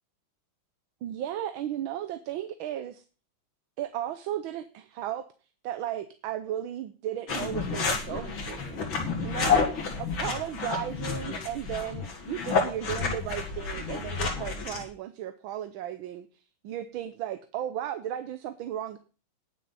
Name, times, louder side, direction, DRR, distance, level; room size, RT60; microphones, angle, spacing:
voice 1, 1.0-3.0 3.8-5.3 5.6-8.8 9.2-9.7 10.0-16.3 16.6-19.0, right 11 dB, 75° right, 10 dB, 1.5 m, -35 dB
sound 1, 7.3-14.8, left 5 dB, 65° left, 2.9 m, -30 dB
19.0 x 6.5 x 4.1 m, 0.34 s
omnidirectional pair, 2.3 m